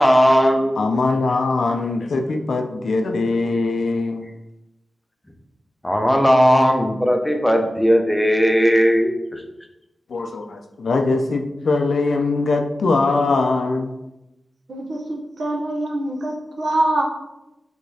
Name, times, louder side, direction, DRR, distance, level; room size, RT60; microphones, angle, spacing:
voice 1, 0.0-0.8 5.8-9.4, equal, 5° left, 4 dB, 0.5 m, -17 dB
voice 2, 0.8-4.3 10.1-13.9, left 3 dB, 70° left, 5 dB, 0.4 m, -21 dB
voice 3, 14.7-17.0, right 1 dB, 70° right, 0 dB, 0.8 m, -24 dB
4.9 x 3.4 x 2.7 m, 0.93 s
wide cardioid pair, 120°, 0 cm